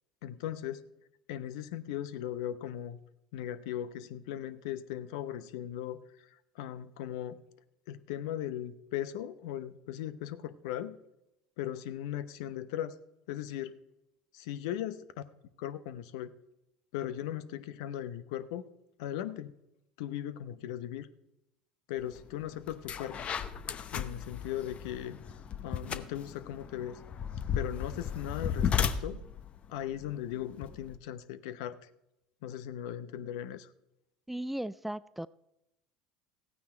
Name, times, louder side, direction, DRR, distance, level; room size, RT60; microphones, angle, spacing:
voice 1, 0.2-0.9 1.3-3.0 3.3-6.0 6.6-7.4 7.9-11.0 11.6-12.9 13.3-13.8 14.3-15.1 15.6-16.3 16.9-18.6 19.0-19.5 20.0-21.1 21.9-23.2 23.9-25.2 25.6-27.0 27.5-29.2 29.7-31.8 32.4-33.7, left 11 dB, 70° left, 14 dB, 0.7 m, -38 dB
sound 1, 22.2-22.3 22.7-31.0, left 7 dB, 40° left, 0.9 m, -35 dB
voice 2, 34.3-35.3, right 1 dB, 5° right, 18 dB, 0.3 m, -36 dB
14.5 x 9.2 x 4.4 m, 0.85 s
hypercardioid pair, 75°, 3 cm